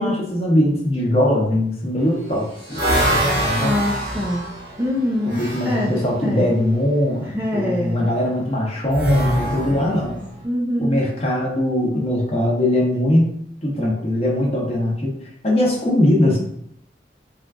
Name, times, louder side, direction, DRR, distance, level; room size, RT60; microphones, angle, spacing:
voice 1, 0.0-2.8 3.0-3.8 5.4-10.2 10.8-13.3 13.6-15.1 15.4-16.4, left 1 dB, 35° left, -3 dB, 1.0 m, -21 dB
sound 1, 2.0-5.9 8.9-10.3, equal, 85° right, 1.4 m, -23 dB
voice 2, 3.6-4.5 4.8-6.5 7.2-8.0 9.7-10.2 10.4-11.1, left 1 dB, 10° right, -3 dB, 0.4 m, -25 dB
3.6 x 2.3 x 3.6 m, 0.68 s
head